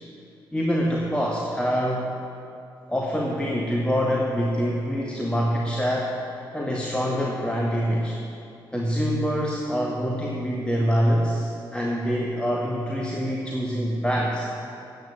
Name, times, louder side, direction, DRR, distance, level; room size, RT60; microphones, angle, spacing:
voice 1, 0.5-2.1 2.9-8.2 8.7-14.5, equal, 10° left, -2 dB, 1.6 m, -25 dB
9.2 x 8.1 x 8.6 m, 2.6 s
hypercardioid pair, 40°, 11 cm